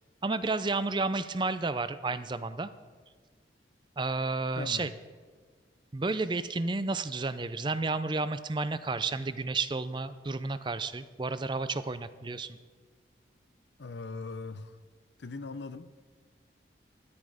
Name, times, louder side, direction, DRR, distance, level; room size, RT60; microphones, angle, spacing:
voice 1, 0.2-2.7 4.0-4.9 5.9-12.6, right 3 dB, 25° right, 13 dB, 0.5 m, -31 dB
voice 2, 4.5-4.9 13.8-14.8 15.2-15.9, left 3 dB, 75° left, 12 dB, 0.7 m, -40 dB
14.5 x 13.0 x 5.0 m, 1.5 s
head